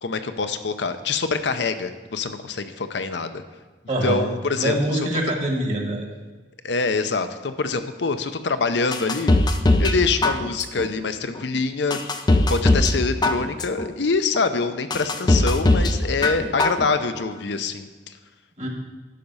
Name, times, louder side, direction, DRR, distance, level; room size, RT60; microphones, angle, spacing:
voice 1, 0.0-3.4 4.0-4.8 6.6-9.3 9.8-12.0 12.5-18.1, left 4 dB, 65° left, 10 dB, 0.6 m, -25 dB
voice 2, 3.9-4.3 4.5-6.1 18.6-18.7, right 1 dB, 40° right, 2 dB, 1.4 m, -24 dB
sound 1, 8.9-10.0 10.2-10.8 11.3-11.4 11.9-12.9 13.2-13.8 14.3-14.4 14.9-15.9 16.2-16.8 17.2-17.3, left 2 dB, 20° left, 0.5 m, -19 dB
12.0 x 5.3 x 5.4 m, 1.3 s
head